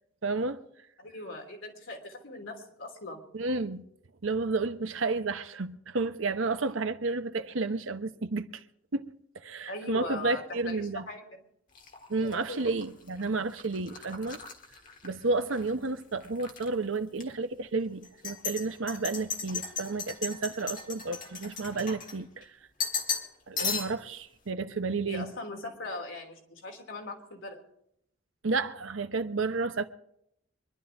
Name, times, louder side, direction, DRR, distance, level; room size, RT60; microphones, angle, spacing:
voice 1, 0.2-0.6 3.3-3.9 4.2-8.5 8.9-9.1 9.4-11.1 12.1-14.4 15.0-22.5 23.5-25.3 28.4-29.9, right 3 dB, 75° right, 0.9 m, -31 dB
voice 2, 1.0-3.3 9.7-11.4 12.2-12.7 25.1-27.6, left 2 dB, 70° left, 3.2 m, -40 dB
sound 1, 11.7-15.7 16.0-16.7 17.1-17.2 18.0-22.4 22.8-23.3 23.6-24.1, left 6 dB, 40° left, 1.7 m, -36 dB
25.0 x 11.0 x 3.5 m
head